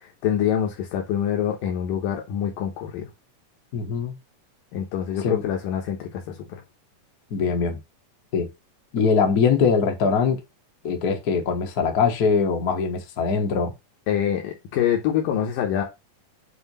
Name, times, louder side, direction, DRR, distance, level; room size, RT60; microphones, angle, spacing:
voice 1, 0.0-3.1 4.7-6.6 14.1-15.8, left 9 dB, 90° left, 2.8 m, -25 dB
voice 2, 3.7-4.1 5.2-5.4 7.3-7.8 8.3-8.5 8.9-10.4 10.8-13.7, left 5 dB, 70° left, 0.8 m, -22 dB
7.8 x 2.8 x 5.3 m
omnidirectional pair, 3.7 m